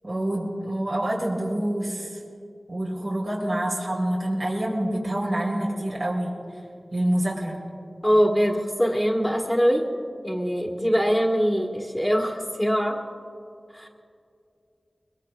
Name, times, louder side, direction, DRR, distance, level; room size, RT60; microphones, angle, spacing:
voice 1, 0.0-2.2 2.7-6.3 6.9-7.6, right 1 dB, 75° right, -4 dB, 3.8 m, -27 dB
voice 2, 8.0-9.8 10.2-13.0 13.7-13.9, equal, 5° left, 0 dB, 1.5 m, -22 dB
22.5 x 22.0 x 2.4 m, 2.4 s
wide cardioid pair, 65°, 0 cm